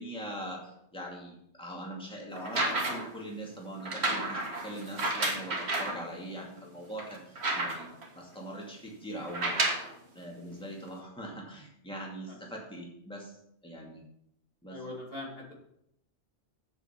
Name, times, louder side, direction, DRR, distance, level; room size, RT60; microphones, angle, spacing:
voice 1, 0.0-7.9 8.2-9.7 10.1-14.0 14.6-14.8, right 1 dB, 5° left, -2 dB, 2.2 m, -42 dB
sound 1, 2.4-3.2 3.8-6.0 6.6-6.7 7.0-8.0 9.2-9.9 10.9-11.0, right 2 dB, 65° right, 1.9 m, -31 dB
voice 2, 14.7-15.5, left 2 dB, 55° left, -2 dB, 2.4 m, -41 dB
8.1 x 7.6 x 5.8 m, 0.75 s
omnidirectional pair, 1.2 m